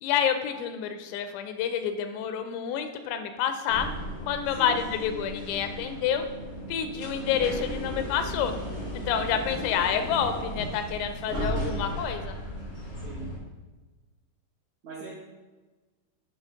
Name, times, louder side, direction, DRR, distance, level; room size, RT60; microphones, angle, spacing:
voice 1, 0.0-3.9 4.3-6.2 6.7-8.6 8.9-12.4, left 8 dB, 85° left, 8 dB, 2.8 m, -28 dB
sound 1, 3.7-13.4, equal, 45° left, 0.9 m, -35 dB
voice 2, 9.3-9.8 11.3-11.6 13.0-13.2 14.8-15.1, right 3 dB, 70° right, -7 dB, 1.7 m, -41 dB
8.7 x 3.4 x 5.0 m, 1.2 s
omnidirectional pair, 4.9 m